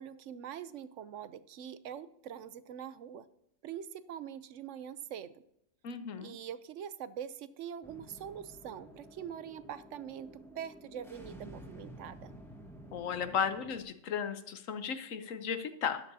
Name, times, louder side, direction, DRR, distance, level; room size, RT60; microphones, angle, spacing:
voice 1, 0.0-3.3 3.6-5.4 6.2-12.3, right 9 dB, 70° right, 14 dB, 0.9 m, -44 dB
voice 2, 5.8-6.3 12.9-16.1, left 7 dB, 80° left, 9 dB, 1.2 m, -35 dB
sound 1, 7.8-13.8, equal, ahead, 1.4 m, -51 dB
13.0 x 10.5 x 2.7 m, 0.78 s
omnidirectional pair, 1.3 m